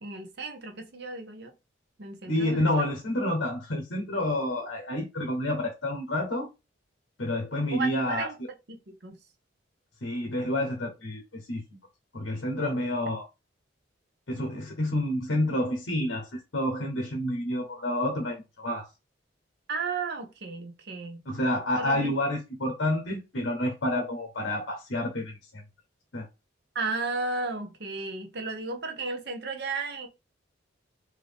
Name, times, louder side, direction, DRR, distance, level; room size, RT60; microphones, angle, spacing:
voice 1, 0.0-1.5 2.0-2.9 7.7-8.4 8.7-9.2 19.7-21.2 21.8-22.1 26.7-30.1, right 3 dB, 55° right, 0.9 m, -34 dB
voice 2, 2.2-6.5 7.2-8.3 10.0-11.6 12.1-13.3 14.3-18.9 21.3-25.6 26.1-26.3, left 1 dB, 65° left, 0.9 m, -29 dB
3.8 x 2.8 x 3.4 m
head